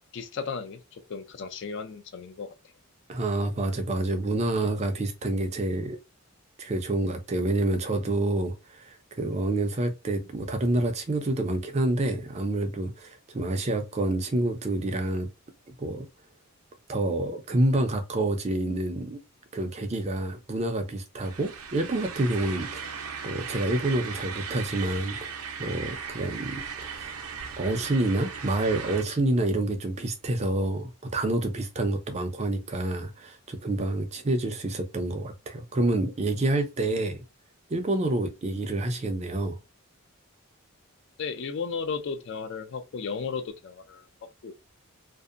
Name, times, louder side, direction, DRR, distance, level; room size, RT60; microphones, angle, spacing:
voice 1, 0.1-2.5 41.2-44.0 44.4-44.5, left 5 dB, 55° left, 0.4 m, -34 dB
voice 2, 3.1-6.0 6.6-15.3 15.8-16.1 16.9-19.2 19.5-23.0 23.2-27.1 27.6-37.2 37.7-39.6, right 2 dB, 30° right, 0.4 m, -28 dB
sound 1, 21.2-29.0, right 6 dB, 90° right, 0.5 m, -37 dB
2.6 x 2.0 x 2.4 m
head